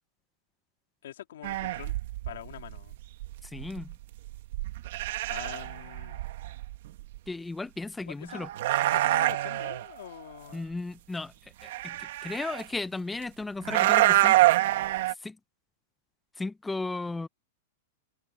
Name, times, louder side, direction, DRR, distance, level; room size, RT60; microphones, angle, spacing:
voice 1, 1.0-2.0 2.2-2.9 5.3-6.2 8.1-8.5 8.9-10.6, left 12 dB, 70° left, 3.2 m, -44 dB
sound 1, 1.4-7.2 8.3-9.9 11.6-12.6 13.6-15.1, right 16 dB, 55° right, 1.4 m, -26 dB
voice 2, 3.4-3.9 7.3-8.5 10.5-11.3 11.6-14.4 15.2-15.4 16.4-17.3, left 3 dB, 5° left, 0.7 m, -35 dB
supercardioid pair, 170°, 0 cm